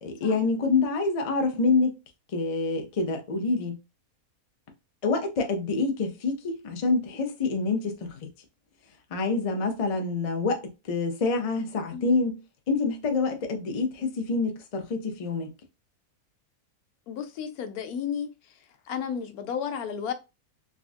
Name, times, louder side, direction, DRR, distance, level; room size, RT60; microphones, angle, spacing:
voice 1, 0.0-2.0 2.3-3.8 5.0-8.2 9.1-12.4 12.7-15.5, left 3 dB, 55° left, 0.4 m, -27 dB
voice 2, 17.1-18.3 18.9-20.1, left 7 dB, 90° left, 1.1 m, -32 dB
3.6 x 2.4 x 2.4 m
omnidirectional pair, 1.5 m